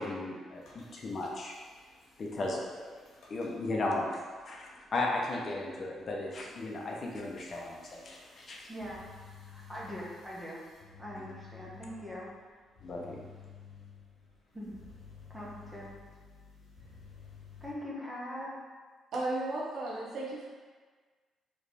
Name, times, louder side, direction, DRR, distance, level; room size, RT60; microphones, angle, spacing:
voice 1, 0.0-1.6 2.2-2.9 3.3-8.7 11.2-11.3 12.8-13.2, left 2 dB, 45° left, -1 dB, 0.7 m, -36 dB
sound 1, 0.5-17.7, left 6 dB, 70° left, 1.1 m, -55 dB
voice 2, 8.7-10.6 11.0-12.3 14.5-14.7 15.3-15.9 17.6-18.5, equal, 10° right, -5 dB, 1.2 m, -42 dB
voice 3, 19.1-20.5, right 2 dB, 65° right, -4 dB, 0.9 m, -34 dB
3.2 x 3.1 x 4.1 m, 1.5 s
cardioid pair, 90°, 0 cm